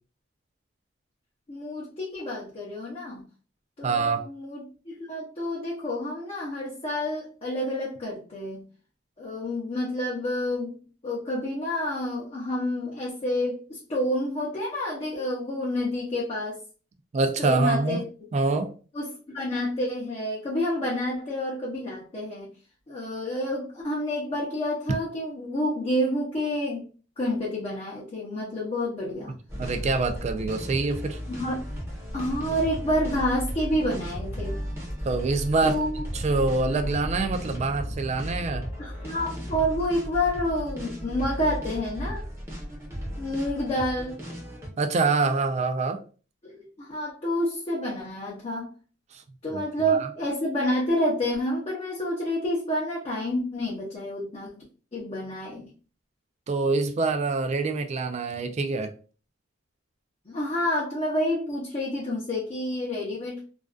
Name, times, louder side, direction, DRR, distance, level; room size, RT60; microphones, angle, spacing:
voice 1, 1.5-3.3 3.8-8.7 9.2-10.8 11.0-16.6 17.4-18.0 18.9-22.5 22.9-26.8 27.2-29.4 31.3-31.6 32.1-34.6 35.6-36.1 38.8-42.2 43.2-44.1 46.4-48.7 49.4-54.6 54.9-55.7 60.3-63.4, left 1 dB, 30° left, 0.6 m, -29 dB
voice 2, 3.8-4.2 17.1-18.1 18.3-18.7 29.6-31.2 35.0-35.8 36.1-38.7 44.8-46.0 49.1-49.2 49.5-49.6 49.9-50.1 56.5-58.9, right 3 dB, 35° right, 0.3 m, -25 dB
sound 1, 29.5-44.7, equal, 15° right, 0.7 m, -35 dB
2.4 x 2.2 x 2.3 m
head